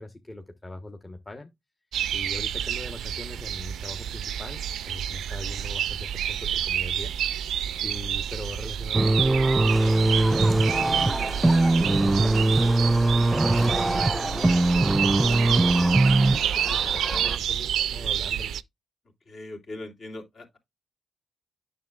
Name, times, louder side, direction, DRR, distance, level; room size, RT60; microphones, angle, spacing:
voice 1, 0.0-1.5 2.1-7.2 7.8-18.5, left 2 dB, 30° left, 1.1 m, -41 dB
sound 1, 1.9-18.6, right 10 dB, 85° right, 0.3 m, -29 dB
sound 2, 8.9-16.4, right 2 dB, 20° right, 0.5 m, -21 dB
sound 3, 9.7-17.4, equal, 5° left, 1.0 m, -37 dB
voice 2, 19.3-20.6, left 2 dB, 60° left, 3.0 m, -40 dB
9.2 x 6.5 x 2.3 m
supercardioid pair, 50°, 0 cm